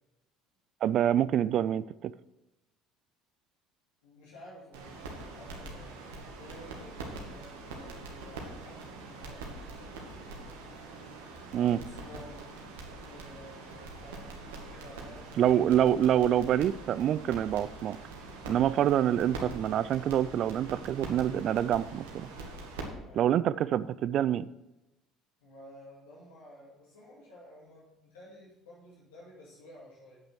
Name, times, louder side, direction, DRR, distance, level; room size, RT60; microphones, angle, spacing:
voice 1, 0.8-2.1 11.5-11.8 15.4-18.0 18.5-22.3 23.2-24.5, right 10 dB, 55° right, 17 dB, 0.3 m, -26 dB
voice 2, 4.0-6.0 6.4-10.3 11.5-12.4 13.0-15.5 16.0-16.4 23.0-23.3 25.4-30.2, left 1 dB, 80° left, -5 dB, 2.4 m, -52 dB
sound 1, 4.7-22.8, right 3 dB, 75° right, 1.9 m, -44 dB
8.9 x 8.3 x 4.8 m, 0.96 s
hypercardioid pair, 60°, 0 cm